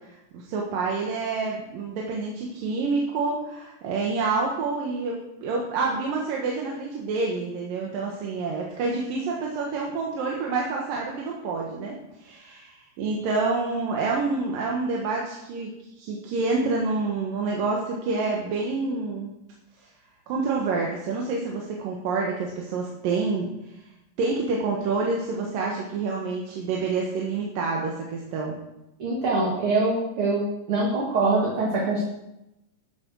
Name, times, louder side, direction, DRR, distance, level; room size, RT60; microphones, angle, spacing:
voice 1, 0.0-15.7 16.0-19.3 19.8-19.9 20.3-23.8 24.2-28.6, right 4 dB, 85° right, -1 dB, 3.2 m, -28 dB
voice 2, 29.0-32.0, right 3 dB, 45° right, -3 dB, 2.5 m, -24 dB
13.0 x 8.5 x 6.3 m, 0.89 s
omnidirectional pair, 3.8 m